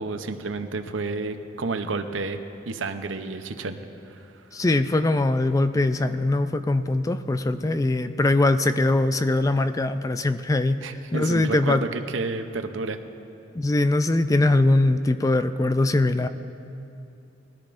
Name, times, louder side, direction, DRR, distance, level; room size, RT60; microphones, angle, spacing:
voice 1, 0.0-2.4 2.7-3.8 4.1-4.2 10.8-13.0, right 3 dB, 85° right, 8 dB, 0.7 m, -30 dB
voice 2, 4.5-10.8 11.1-11.8 13.6-16.3, left 2 dB, 20° left, 10 dB, 0.3 m, -22 dB
21.0 x 13.5 x 2.6 m, 2.7 s
head